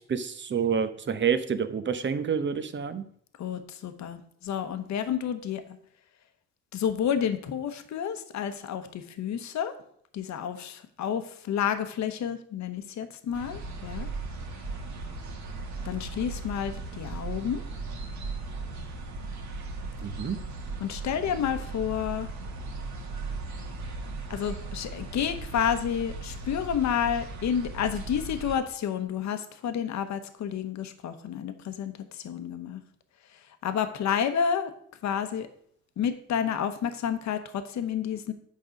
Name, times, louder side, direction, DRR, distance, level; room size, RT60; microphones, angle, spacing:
voice 1, 0.1-3.0 20.0-20.4, right 7 dB, 40° right, 11 dB, 0.9 m, -28 dB
voice 2, 3.4-5.6 6.7-9.7 10.1-14.1 15.8-17.6 20.8-22.3 24.3-31.9 32.2-32.8 33.6-34.7 35.0-35.5 36.0-38.3, left 8 dB, 65° left, 9 dB, 1.0 m, -30 dB
sound 1, 13.3-28.6, right 3 dB, 70° right, 1.6 m, -37 dB
8.3 x 5.4 x 5.1 m, 0.63 s
cardioid pair, 90°, 30 cm